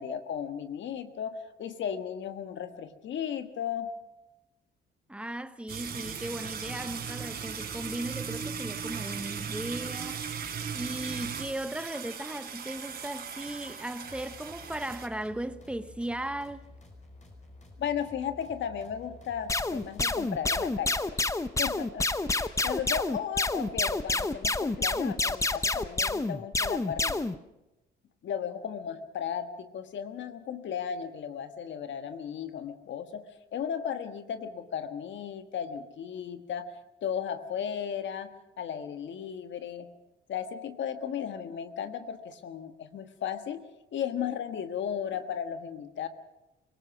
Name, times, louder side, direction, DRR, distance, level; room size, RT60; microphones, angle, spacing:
voice 1, 0.0-3.9 17.8-21.2 21.6-27.2 28.2-33.2 33.5-36.7 37.0-39.9 40.3-43.6 43.9-46.1, left 8 dB, 70° left, 1.5 m, -35 dB
voice 2, 5.1-10.3 10.7-16.7, right 1 dB, 5° right, 1.1 m, -37 dB
sound 1, 5.7-15.1, right 7 dB, 55° right, 4.5 m, -38 dB
sound 2, 14.0-20.7, left 2 dB, 35° left, 5.4 m, -51 dB
sound 3, 19.5-27.4, left 2 dB, 15° left, 0.8 m, -28 dB
24.5 x 17.0 x 6.2 m
cardioid pair, 90°, 20 cm